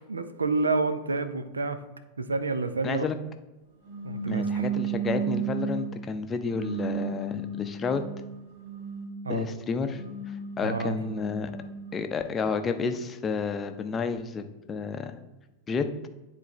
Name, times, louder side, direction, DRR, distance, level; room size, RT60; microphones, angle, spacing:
voice 1, 0.0-1.8 2.2-3.1 4.0-4.7 9.2-9.6 10.6-11.0, right 3 dB, 75° right, 10 dB, 0.5 m, -29 dB
voice 2, 2.8-3.2 4.3-8.0 9.3-10.0 10.6-11.5 11.9-15.2 15.7-15.9, left 5 dB, 20° left, 8 dB, 0.6 m, -30 dB
sound 1, 3.8-5.9 6.5-9.2 9.8-12.1, right 6 dB, 60° right, 1.9 m, -33 dB
10.5 x 4.0 x 3.1 m, 1.1 s
figure-of-eight pair, 90°, 0 cm